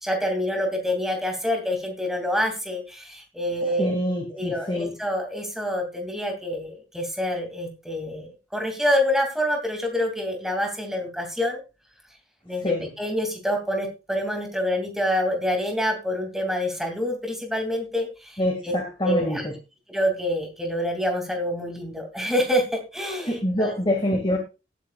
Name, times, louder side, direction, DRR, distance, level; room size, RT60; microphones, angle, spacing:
voice 1, 0.0-3.9 4.3-11.6 12.4-18.7 19.0-19.5 19.9-23.7, equal, ahead, 3 dB, 2.7 m, -27 dB
voice 2, 3.8-4.9 12.6-12.9 18.4-19.5 23.3-24.4, left 1 dB, 25° left, 2 dB, 2.1 m, -25 dB
17.0 x 9.1 x 2.4 m, 0.29 s
head